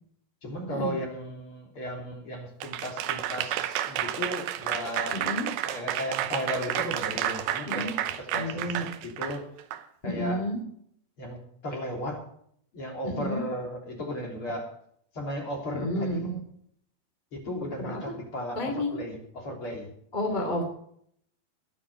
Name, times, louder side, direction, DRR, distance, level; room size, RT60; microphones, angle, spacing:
voice 1, 0.4-5.2 5.6-7.9 8.2-9.4 10.0-10.4 11.2-11.4 11.6-12.2 12.7-14.7 15.1-16.4 17.3-19.9, equal, 35° left, 0 dB, 3.6 m, -35 dB
Applause / Crowd, 2.6-9.8, right 12 dB, 90° right, 3.1 m, -31 dB
voice 2, 5.1-5.5 7.7-7.9 8.3-8.9 10.0-10.6 13.0-13.4 15.7-16.2 17.8-18.1 18.5-19.0 20.1-20.6, left 1 dB, 15° left, 2 dB, 2.1 m, -30 dB
21.5 x 7.3 x 5.3 m, 0.67 s
omnidirectional pair, 4.9 m